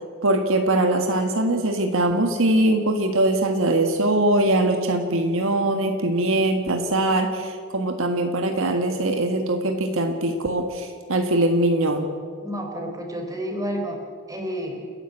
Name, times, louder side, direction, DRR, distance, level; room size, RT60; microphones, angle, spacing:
voice 1, 0.2-12.1, right 1 dB, 65° right, 5 dB, 1.6 m, -22 dB
voice 2, 12.4-14.0 14.3-14.8, equal, 15° right, 2 dB, 3.7 m, -30 dB
29.5 x 11.0 x 8.7 m, 2.2 s
head